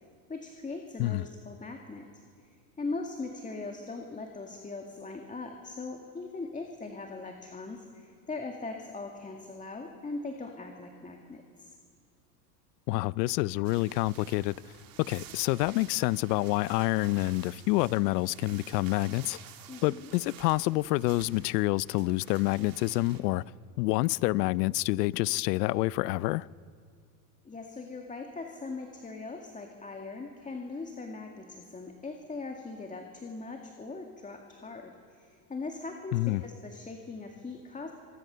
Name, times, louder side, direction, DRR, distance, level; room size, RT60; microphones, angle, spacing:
voice 1, 0.3-11.8 19.7-20.1 27.4-37.9, left 3 dB, 15° left, 2.0 m, -40 dB
voice 2, 12.9-14.6 15.0-19.4 19.8-23.4 23.8-26.5 36.1-36.4, left 20 dB, 75° left, 0.6 m, -27 dB
sound 1, 13.6-23.2, right 9 dB, 45° right, 2.7 m, -51 dB
26.0 x 20.5 x 6.8 m
supercardioid pair, 110°, 49 cm